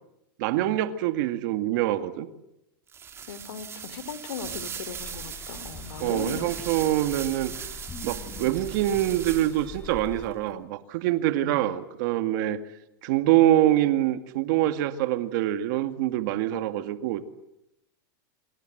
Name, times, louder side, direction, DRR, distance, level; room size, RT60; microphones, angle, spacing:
voice 1, 0.4-2.3 6.0-7.5 8.0-12.6 13.0-17.3, right 13 dB, 60° right, 10 dB, 2.0 m, -25 dB
sound 1, 2.9-9.8, right 7 dB, 20° right, 3.1 m, -39 dB
voice 2, 3.2-6.5 8.3-8.6 11.4-11.6, left 6 dB, 80° left, 15 dB, 3.3 m, -38 dB
sound 2, 5.0-10.3, left 4 dB, 15° left, 5.6 m, -43 dB
27.5 x 27.0 x 8.0 m, 0.85 s
supercardioid pair, 140°, 12 cm